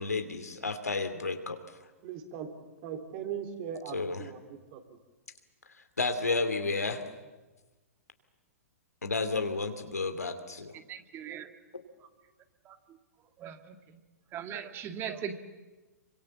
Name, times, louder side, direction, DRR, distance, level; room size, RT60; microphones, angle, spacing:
voice 1, 0.0-1.6 3.9-4.3 6.0-7.0 9.0-10.8 11.7-11.8, left 3 dB, 90° left, 8 dB, 2.6 m, -31 dB
voice 2, 2.0-2.5 2.8-4.4 4.7-4.8, right 8 dB, 45° right, 5 dB, 3.7 m, -38 dB
voice 3, 10.7-11.5 12.7-12.8 13.4-14.0 14.3-15.3, right 8 dB, 30° right, 8 dB, 1.9 m, -39 dB
27.5 x 24.5 x 7.3 m, 1.2 s
hypercardioid pair, 115°, 8 cm